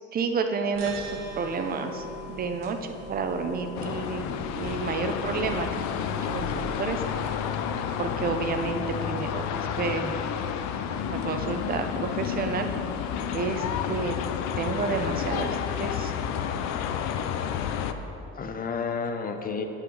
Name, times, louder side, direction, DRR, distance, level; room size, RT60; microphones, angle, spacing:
voice 1, 0.1-7.3 8.0-10.1 10.9-12.7 13.3-14.2 14.6-16.1, right 4 dB, 30° right, 6 dB, 0.6 m, -30 dB
sound 1, 0.7-7.2, equal, 60° right, 1.4 m, -41 dB
sound 2, 3.7-17.9, left 8 dB, 65° left, 0.6 m, -30 dB
voice 2, 13.9-14.3 18.3-19.6, left 5 dB, 30° left, 6 dB, 0.7 m, -32 dB
8.0 x 5.7 x 5.4 m, 2.9 s
cardioid pair, 110°, 30 cm